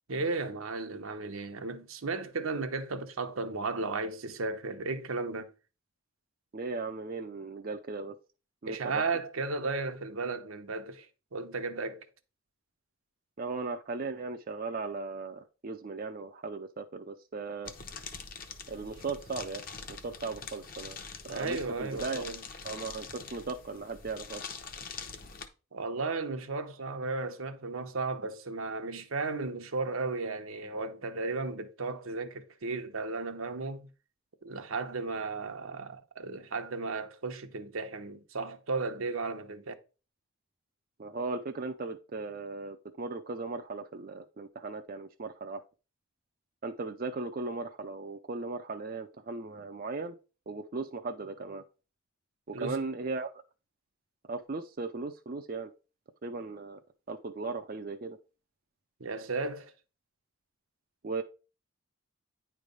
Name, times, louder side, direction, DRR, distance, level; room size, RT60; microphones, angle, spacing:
voice 1, 0.1-5.5 8.7-11.1 11.3-12.1 21.3-22.4 25.7-33.9 34.4-39.7 52.5-52.8 59.0-59.7, right 3 dB, 80° right, 0.9 m, -35 dB
voice 2, 6.5-8.2 8.6-9.1 13.4-17.7 18.7-19.7 20.0-21.0 21.2-22.2 22.6-24.4 41.0-45.6 46.6-50.2 50.5-51.6 52.5-53.3 54.3-55.7 56.2-56.8 57.1-58.2 61.0-61.2, right 3 dB, 40° right, 0.5 m, -37 dB
sound 1, 17.6-25.5, left 5 dB, 40° left, 0.8 m, -44 dB
9.7 x 3.3 x 5.3 m
head